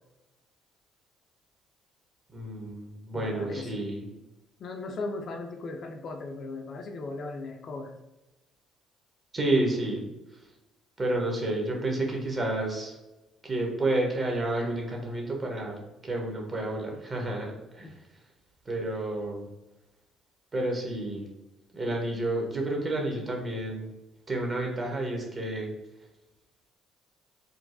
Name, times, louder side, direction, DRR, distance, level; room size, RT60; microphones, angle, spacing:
voice 1, 2.3-4.0 9.3-10.0 11.0-12.9 13.4-17.9 18.6-19.5 20.5-21.3 21.7-23.9 24.3-25.7, right 1 dB, 35° right, 0 dB, 1.0 m, -30 dB
voice 2, 3.1-3.8 4.6-8.0 17.8-17.9, left 3 dB, 50° left, 4 dB, 0.4 m, -37 dB
3.7 x 2.2 x 2.5 m, 1.0 s
figure-of-eight pair, 50°, 0 cm